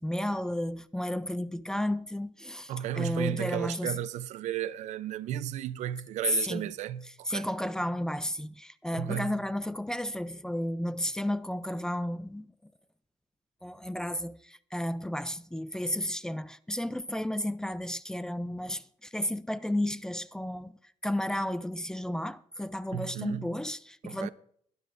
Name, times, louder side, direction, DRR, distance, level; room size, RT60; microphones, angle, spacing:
voice 1, 0.0-4.0 6.3-6.7 7.3-12.5 13.6-20.7 21.0-24.3, left 1 dB, 5° left, 0.3 m, -32 dB
voice 2, 2.7-7.5 8.9-9.4 22.9-23.5 24.0-24.3, right 11 dB, 80° right, 0.5 m, -34 dB
23.0 x 9.8 x 2.5 m
cardioid pair, 145°, 12 cm